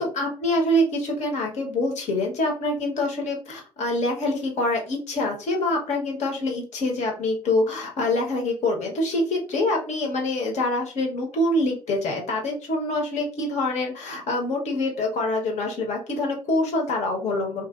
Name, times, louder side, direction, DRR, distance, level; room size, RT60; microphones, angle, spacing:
voice 1, 0.0-17.7, left 1 dB, 55° left, 1 dB, 1.3 m, -25 dB
4.0 x 2.5 x 2.5 m, 0.37 s
hypercardioid pair, 55°, 14 cm